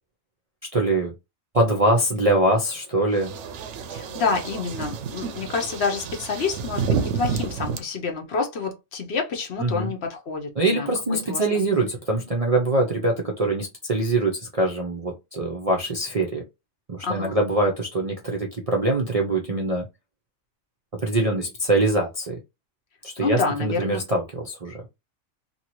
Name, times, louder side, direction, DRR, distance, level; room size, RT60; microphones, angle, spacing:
voice 1, 0.7-1.1 1.5-3.3 9.6-9.9 10.6-16.5 16.9-19.9 20.9-22.4 23.0-24.9, right 2 dB, 45° right, 0.5 m, -23 dB
sound 1, 3.1-7.8, right 6 dB, 65° right, 0.8 m, -30 dB
voice 2, 3.9-10.9 11.3-11.6 17.0-17.4 23.2-24.0, left 4 dB, 55° left, 0.9 m, -28 dB
2.8 x 2.7 x 2.9 m
omnidirectional pair, 1.4 m